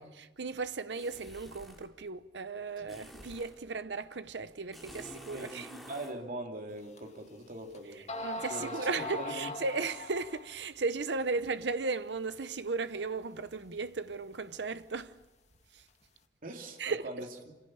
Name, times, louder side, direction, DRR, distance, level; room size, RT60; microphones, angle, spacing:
voice 1, 0.0-5.7 8.0-15.2 15.7-15.8 16.8-17.1, right 4 dB, 80° right, 0.8 m, -36 dB
sound 1, 0.9-1.9 2.9-3.6 4.7-6.2, equal, ahead, 3.9 m, -49 dB
voice 2, 5.3-8.1 8.5-9.5 16.4-17.3, right 1 dB, 50° right, 2.9 m, -42 dB
sound 2, 7.0-7.1 7.7-7.8 8.1-10.5, left 2 dB, 40° left, 2.2 m, -39 dB
26.0 x 16.5 x 8.9 m
head